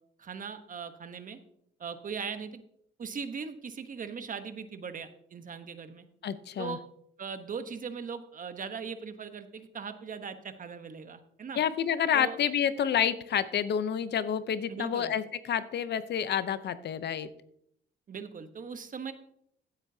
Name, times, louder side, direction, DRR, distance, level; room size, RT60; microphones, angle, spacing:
voice 1, 0.2-1.4 1.8-2.7 3.0-6.0 6.6-6.8 7.2-11.6 12.1-12.4 14.7-15.1 18.1-19.1, right 6 dB, 40° right, 9 dB, 1.1 m, -39 dB
voice 2, 6.2-6.8 11.6-17.3, left 8 dB, 60° left, 13 dB, 0.7 m, -29 dB
15.0 x 8.2 x 2.8 m, 0.72 s
cardioid pair, 90°, 20 cm